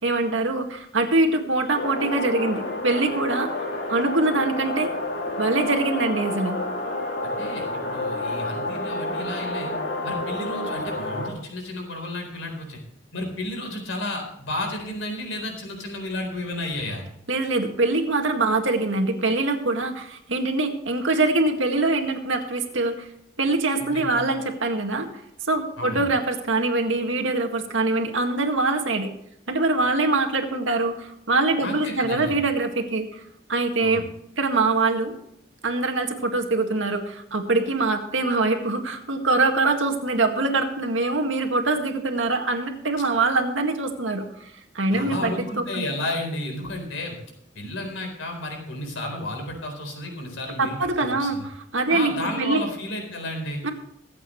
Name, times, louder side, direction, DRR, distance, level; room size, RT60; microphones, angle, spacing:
voice 1, 0.0-3.5 3.9-4.9 5.4-6.6 17.3-23.1 23.4-25.1 25.5-29.1 29.5-33.2 33.5-34.0 34.4-35.1 35.6-45.3 45.7-45.9 50.6-52.6 53.6-53.7, right 3 dB, 85° right, 4 dB, 2.0 m, -23 dB
sound 1, 1.7-11.3, left 2 dB, 60° left, 2.5 m, -29 dB
voice 2, 7.2-9.7 10.0-12.8 13.1-17.0 23.8-24.3 25.8-26.1 31.6-32.4 33.8-34.1 44.9-47.2 47.6-51.4 51.9-53.6, left 1 dB, 90° left, 3 dB, 4.0 m, -32 dB
24.0 x 8.5 x 3.2 m, 0.75 s
head